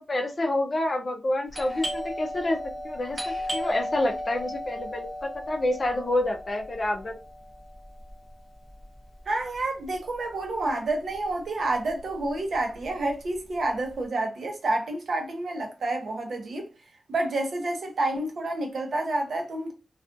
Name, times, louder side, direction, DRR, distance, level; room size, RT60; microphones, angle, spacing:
voice 1, 0.0-2.6 2.8-7.1, left 1 dB, 35° left, 0.5 m, -28 dB
Doorbell, 1.5-10.9 11.1-11.2 11.9-12.2 12.5-13.9, equal, 15° right, 0.8 m, -36 dB
voice 2, 9.3-16.7 17.1-19.7, right 2 dB, 70° right, 0.7 m, -29 dB
2.4 x 2.3 x 2.5 m
wide cardioid pair, 140°, 0 cm